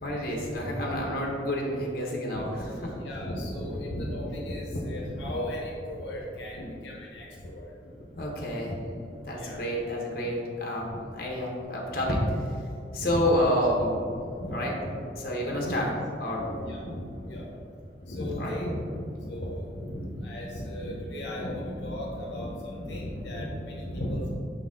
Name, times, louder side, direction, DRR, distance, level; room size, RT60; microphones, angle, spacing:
voice 1, 0.0-3.0 8.2-8.7 9.2-12.4 12.9-14.2 14.5-14.7 15.2-15.9 16.2-16.4 18.4-18.5, equal, 50° left, -2 dB, 1.1 m, -29 dB
voice 2, 2.3-7.7 8.2-8.3 8.7-8.9 9.2-9.6 10.9-11.0 13.0-13.2 13.8-13.9 14.4-15.0 15.4-15.9 16.4-17.4 18.0-24.3, left 1 dB, 75° left, -3 dB, 0.9 m, -35 dB
6.5 x 4.0 x 3.7 m, 2.4 s
head